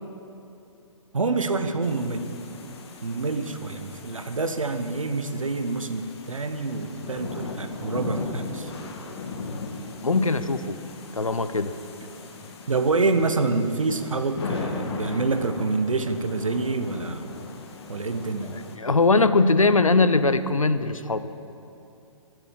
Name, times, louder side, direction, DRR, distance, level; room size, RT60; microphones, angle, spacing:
voice 1, 1.1-2.3 3.0-8.7 12.7-17.2 17.9-18.5, right 3 dB, 75° right, 8 dB, 1.3 m, -27 dB
sound 1, 1.8-18.8, left 3 dB, 50° left, 1.7 m, -38 dB
voice 2, 10.0-10.8 11.1-11.7 18.8-21.3, left 3 dB, 80° left, 12 dB, 0.9 m, -21 dB
23.5 x 8.1 x 7.5 m, 2.8 s
figure-of-eight pair, 125°, 17 cm